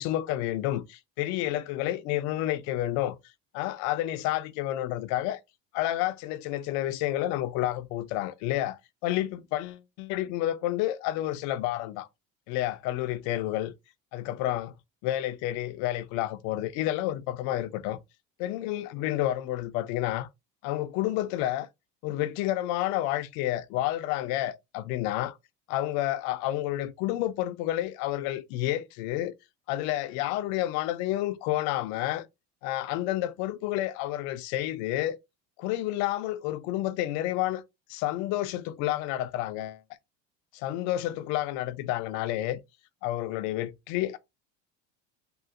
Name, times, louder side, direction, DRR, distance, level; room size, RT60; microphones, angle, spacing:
voice 1, 0.0-3.2 3.5-5.4 5.7-12.1 12.5-13.7 14.1-14.7 15.0-18.0 18.4-20.3 20.6-21.7 22.0-25.4 25.7-29.3 29.7-32.3 32.6-35.2 35.6-37.6 37.9-39.8 40.5-42.6 43.0-44.2, left 14 dB, 70° left, 0.5 m, -30 dB
3.7 x 2.4 x 2.4 m
cardioid pair, 125°, 30 cm